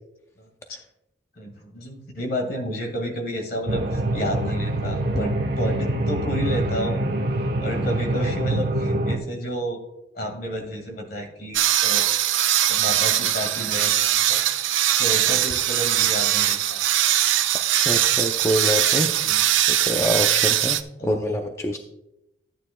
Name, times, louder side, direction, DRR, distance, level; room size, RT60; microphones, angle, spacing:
voice 1, 0.4-0.8 1.4-7.0 7.6-9.8 10.2-14.4 15.0-16.8 19.2-19.5 21.0-21.4, equal, 50° left, 4 dB, 1.9 m, -31 dB
sound 1, 3.7-9.2, right 1 dB, 55° right, 1.0 m, -25 dB
sound 2, 11.5-20.8, right 12 dB, 80° right, 0.5 m, -21 dB
voice 2, 17.8-19.3 19.7-21.8, left 1 dB, 15° left, 4 dB, 0.4 m, -26 dB
13.5 x 9.1 x 2.2 m, 0.88 s
head